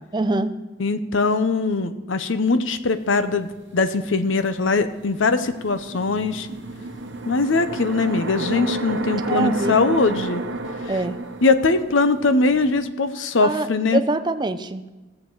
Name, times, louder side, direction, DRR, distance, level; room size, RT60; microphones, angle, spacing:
voice 1, 0.1-0.5 9.3-9.8 10.9-11.2 13.4-13.7 13.9-14.9, right 2 dB, 20° right, 10 dB, 0.5 m, -24 dB
voice 2, 0.8-6.5 7.2-10.4 10.8-11.0 11.4-14.0, left 3 dB, 75° left, 11 dB, 0.8 m, -21 dB
sound 1, 3.5-3.6 4.8-12.8, right 2 dB, 70° right, 1.0 m, -31 dB
18.0 x 7.4 x 4.7 m, 1.2 s
head